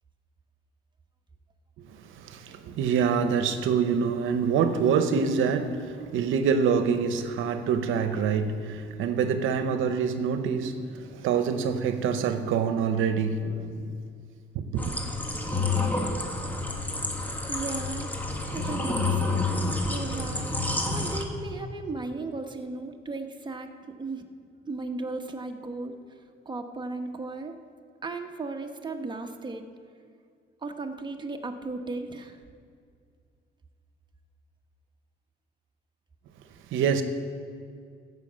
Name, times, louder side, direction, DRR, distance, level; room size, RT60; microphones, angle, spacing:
voice 1, 1.8-14.0 14.5-15.0 36.7-37.0, right 6 dB, 85° right, 9 dB, 0.8 m, -26 dB
sound 1, 14.8-21.3, left 2 dB, 10° left, 1.7 m, -29 dB
voice 2, 17.5-18.1 18.5-19.6 19.9-24.2 24.7-26.0 26.4-27.5 28.0-29.7 30.6-32.4, right 3 dB, 20° right, 4 dB, 1.1 m, -36 dB
15.0 x 5.7 x 7.5 m, 2.2 s
cardioid pair, 90°, 20 cm